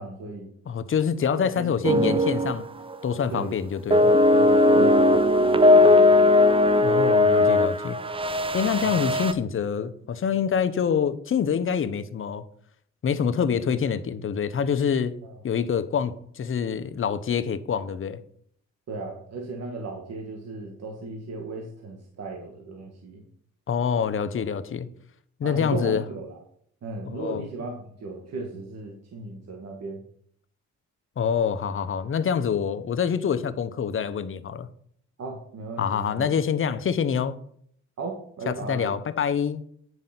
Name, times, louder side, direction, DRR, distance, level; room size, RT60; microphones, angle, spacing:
voice 1, 0.0-0.5 1.3-1.7 3.3-3.5 4.3-6.6 8.8-8.9 15.2-15.3 18.9-23.2 25.4-26.4 26.8-30.0 35.2-36.3 38.0-39.0, right 3 dB, 55° right, 0 dB, 1.8 m, -36 dB
voice 2, 0.7-2.7 3.0-4.1 6.8-8.0 8.5-12.4 13.0-15.1 15.4-18.2 23.7-24.9 25.4-26.0 27.1-27.4 31.2-34.7 35.8-37.4 38.5-39.6, left 7 dB, 45° left, 12 dB, 0.9 m, -26 dB
sound 1, 1.8-2.6 2.9-3.2 3.9-9.3, left 2 dB, 20° right, 0.6 m, -18 dB
9.5 x 5.2 x 5.9 m, 0.63 s
cardioid pair, 90°, 30 cm